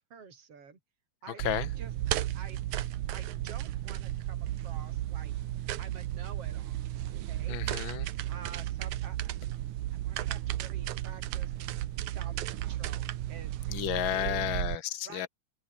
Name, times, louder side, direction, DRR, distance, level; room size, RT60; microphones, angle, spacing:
voice 1, 0.1-0.8 1.2-1.9 2.3-2.6 3.1-5.3 5.8-7.6 8.3-9.4 9.9-11.6 12.1-13.6 14.1-14.6 15.0-15.3, right 6 dB, 50° right, 5.3 m, -49 dB
sound 1, 1.4-14.7, right 14 dB, 75° right, 2.4 m, -34 dB
voice 2, 7.5-8.1 13.7-15.3, left 11 dB, 45° left, 1.9 m, -32 dB
open air
omnidirectional pair, 3.6 m